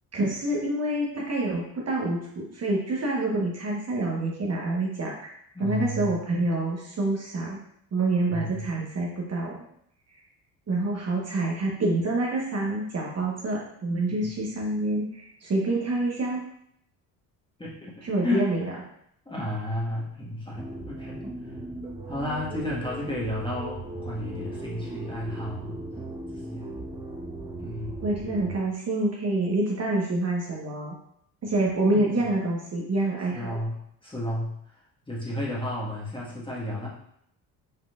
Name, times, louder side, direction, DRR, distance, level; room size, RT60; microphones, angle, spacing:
voice 1, 0.1-5.1 5.6-7.6 7.9-9.6 10.7-16.4 18.0-18.7 28.0-30.9 31.4-33.6, right 2 dB, 35° right, -3 dB, 1.3 m, -27 dB
voice 2, 5.5-6.1 8.3-8.7 14.2-14.3 17.6-18.5 19.2-21.3 22.1-25.8 26.3-26.7 27.6-27.9 31.8-32.3 33.3-33.7 34.0-34.5 35.1-36.9, left 1 dB, 10° left, -5 dB, 1.5 m, -32 dB
sound 1, 20.5-28.5, right 1 dB, 15° right, 1.2 m, -37 dB
5.7 x 3.6 x 2.5 m, 0.72 s
hypercardioid pair, 70°, 44 cm